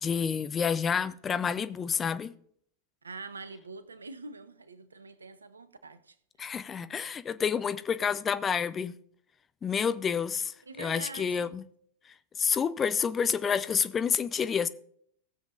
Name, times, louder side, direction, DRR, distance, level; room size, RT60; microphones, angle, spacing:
voice 1, 0.0-2.3 6.4-8.9 9.6-11.6 12.4-14.7, left 7 dB, 20° left, 0.5 m, -29 dB
voice 2, 3.0-6.2 10.7-11.5, right 3 dB, 75° right, 0.8 m, -44 dB
17.5 x 7.3 x 2.5 m
figure-of-eight pair, 90°, 0 cm